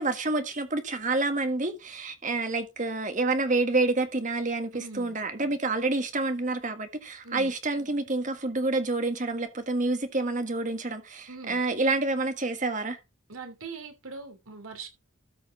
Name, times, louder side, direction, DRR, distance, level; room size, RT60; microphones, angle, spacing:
voice 1, 0.0-13.0, right 2 dB, 40° right, 1.7 m, -28 dB
voice 2, 4.7-5.2 7.2-7.5 11.3-11.6 13.3-14.9, right 4 dB, 90° right, 2.9 m, -41 dB
13.5 x 4.9 x 4.9 m
head